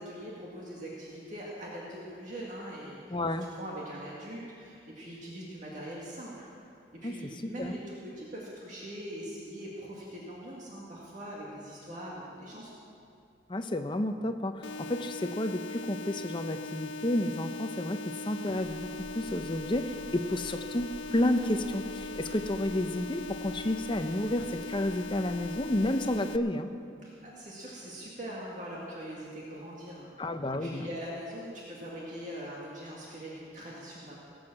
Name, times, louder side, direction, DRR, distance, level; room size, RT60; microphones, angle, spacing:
voice 1, 0.0-6.5 7.0-12.8 27.0-30.1 30.6-34.2, equal, 45° right, -5 dB, 2.0 m, -42 dB
voice 2, 3.1-3.5 7.0-7.1 7.4-7.7 13.5-18.9 19.1-26.7 30.2-30.9, left 1 dB, 25° left, 8 dB, 0.6 m, -31 dB
sound 1, 14.6-26.4, left 3 dB, 75° left, 0.5 m, -40 dB
sound 2, 18.6-26.1, equal, 10° right, 2.2 m, -50 dB
17.5 x 7.9 x 7.5 m, 2.5 s
head